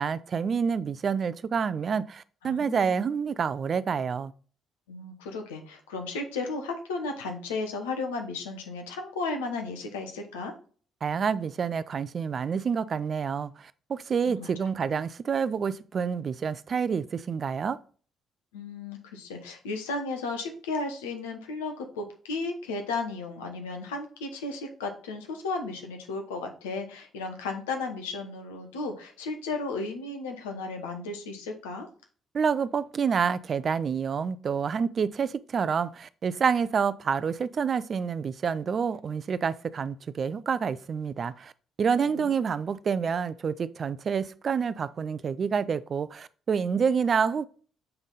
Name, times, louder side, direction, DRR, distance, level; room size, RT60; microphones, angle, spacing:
voice 1, 0.0-4.3 11.0-17.8 32.3-41.5 41.8-47.5, right 6 dB, 45° right, 0.4 m, -28 dB
voice 2, 2.4-3.0 4.9-10.5 14.3-14.5 18.5-31.9 42.0-42.3, left 3 dB, 80° left, 0.9 m, -34 dB
6.8 x 3.5 x 3.9 m
hypercardioid pair, 45°, 0 cm